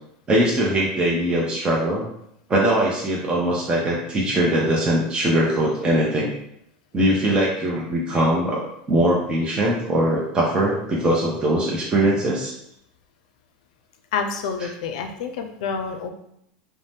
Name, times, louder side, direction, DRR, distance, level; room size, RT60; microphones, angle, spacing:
voice 1, 0.3-2.1 2.5-6.3 6.9-8.6 8.9-12.5, right 1 dB, 25° right, -4 dB, 0.7 m, -21 dB
voice 2, 14.1-16.1, left 5 dB, 80° left, 6 dB, 0.4 m, -28 dB
2.6 x 2.1 x 3.4 m, 0.76 s
supercardioid pair, 105°, 4 cm